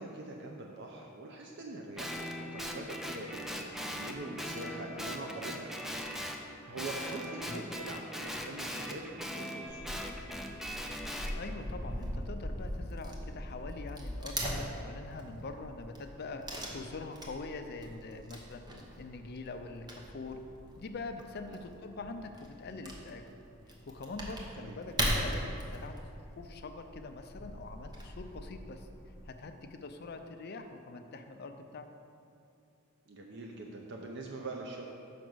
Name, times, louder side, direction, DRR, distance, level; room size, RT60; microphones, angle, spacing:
voice 1, 0.0-6.0 6.3-10.0 21.5-21.6 24.5-24.8 33.1-34.9, right 2 dB, 60° right, 0 dB, 0.6 m, -43 dB
Guitar, 2.0-6.4 6.8-11.3, equal, ahead, 0.4 m, -40 dB
Wood / Tearing, 9.7-29.3, equal, 20° right, 0.8 m, -40 dB
voice 2, 11.4-16.4 16.7-18.6 19.0-20.4 20.8-23.2 23.9-25.9 26.4-28.9 29.3-31.9, left 3 dB, 50° left, 6 dB, 0.5 m, -44 dB
6.0 x 5.1 x 6.2 m, 2.6 s
head